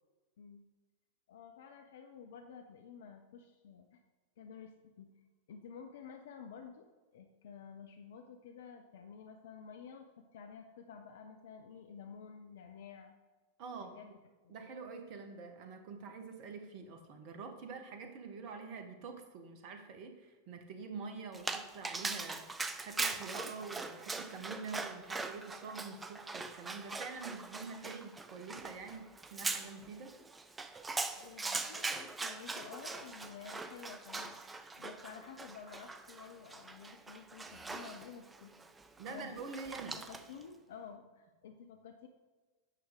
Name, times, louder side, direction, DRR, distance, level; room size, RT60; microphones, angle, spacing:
voice 1, 1.3-4.0 4.4-5.1 5.5-6.9 7.1-13.1 13.8-14.1 14.4-14.7 24.5-24.9 31.1-34.4 34.8-38.5 39.1-39.4 39.9-42.1, left 6 dB, 60° left, 5 dB, 0.6 m, -51 dB
voice 2, 13.6-14.0 14.5-22.4 22.8-30.1 39.0-40.0, right 4 dB, 40° right, 6 dB, 1.2 m, -46 dB
Dog, 21.3-40.4, right 3 dB, 10° right, 0.5 m, -42 dB
8.9 x 6.2 x 3.7 m, 1.3 s
figure-of-eight pair, 90°, 0 cm